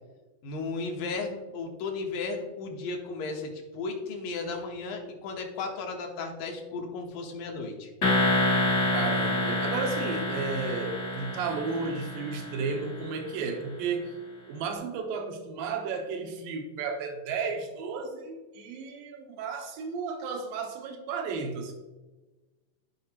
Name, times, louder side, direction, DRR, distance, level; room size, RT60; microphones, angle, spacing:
voice 1, 0.4-7.9, left 3 dB, 75° left, 2 dB, 2.7 m, -35 dB
sound 1, 8.0-12.9, left 2 dB, 55° left, 0.7 m, -28 dB
voice 2, 8.9-14.1 14.5-21.7, right 4 dB, 80° right, 3 dB, 2.7 m, -33 dB
13.5 x 5.2 x 3.0 m, 1.2 s
omnidirectional pair, 4.1 m